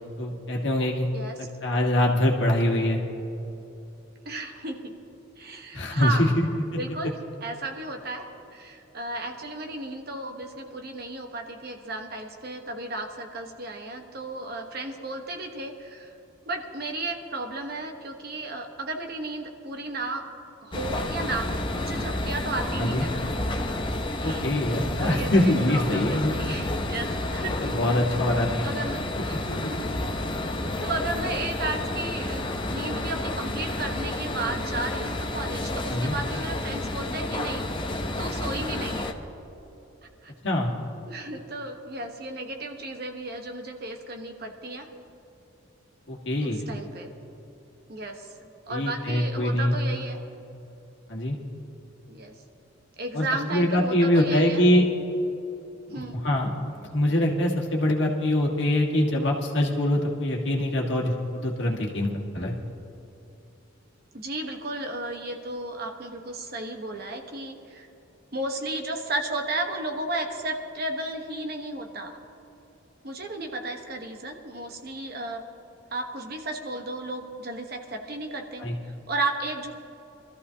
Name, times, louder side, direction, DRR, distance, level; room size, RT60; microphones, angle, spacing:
voice 1, 0.2-1.1 1.4-3.0 5.7-6.5 22.8-23.0 24.2-26.3 27.6-28.6 29.1-29.2 35.9-36.1 40.4-40.7 46.1-46.6 48.7-49.8 51.1-51.4 53.1-54.9 55.9-62.5 78.6-78.7, left 1 dB, 60° left, -1 dB, 1.7 m, -24 dB
voice 2, 4.2-4.9 5.4-6.3 6.8-8.3 8.5-16.1 16.4-20.2 20.6-23.4 24.2-24.5 25.0-27.7 28.6-29.0 29.3-29.8 30.6-37.7 38.2-39.1 40.2-40.3 41.1-44.9 46.4-47.1 47.9-48.3 48.7-50.2 52.1-52.3 53.0-54.6 55.9-56.2 64.1-67.9 68.3-72.2 73.0-75.4 75.9-79.7, right 2 dB, 50° right, 3 dB, 1.2 m, -34 dB
sound 1, 20.7-39.1, left 1 dB, 25° left, 0.7 m, -30 dB
23.5 x 14.0 x 2.8 m, 3.0 s
head